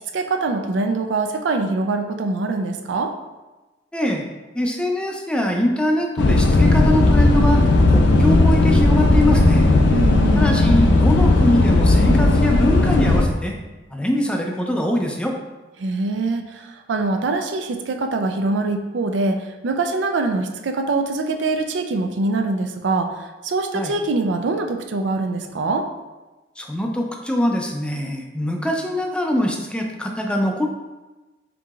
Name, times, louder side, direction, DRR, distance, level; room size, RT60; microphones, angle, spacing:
voice 1, 0.1-3.1 9.9-10.5 15.8-25.9, right 3 dB, 80° right, 6 dB, 0.4 m, -23 dB
voice 2, 3.9-4.2 4.5-7.6 7.9-9.7 10.4-13.6 13.9-15.3 23.7-23.9 26.6-30.7, left 1 dB, 5° left, 1 dB, 0.4 m, -23 dB
sound 1, 6.2-13.3, left 2 dB, 70° left, 0.5 m, -15 dB
4.5 x 3.8 x 2.4 m, 1.1 s
head